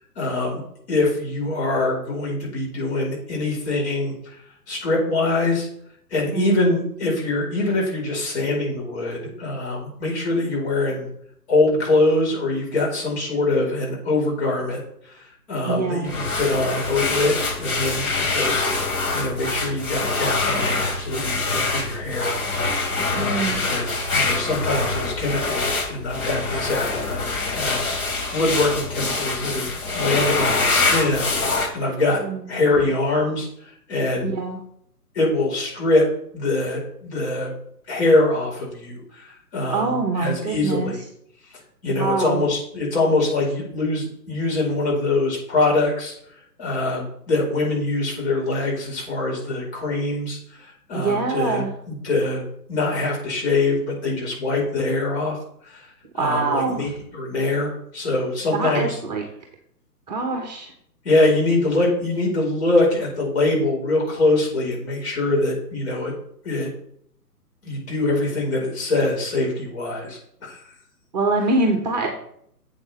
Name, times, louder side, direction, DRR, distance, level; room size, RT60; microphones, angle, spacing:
voice 1, 0.2-0.6 0.9-4.4 4.7-5.7 6.1-11.1 11.5-14.8 15.1-18.7 19.1-22.4 23.1-32.2 32.5-34.4 35.1-36.0 36.3-37.5 37.9-41.0 41.8-46.1 46.6-55.4 55.6-55.9 56.2-59.0 61.0-66.1 66.4-66.7 67.6-70.6, left 2 dB, 40° left, -3 dB, 4.5 m, -23 dB
voice 2, 6.3-6.7 15.7-16.1 23.1-23.6 32.2-32.4 34.2-34.6 39.7-40.9 41.9-42.4 50.9-51.7 56.1-56.8 58.5-59.2 60.1-60.7 71.1-72.1, right 3 dB, 25° right, 3 dB, 1.2 m, -24 dB
sound 1, 16.1-31.7, left 3 dB, 60° left, 3.5 m, -25 dB
11.5 x 7.8 x 3.4 m, 0.69 s
figure-of-eight pair, 135°, 49 cm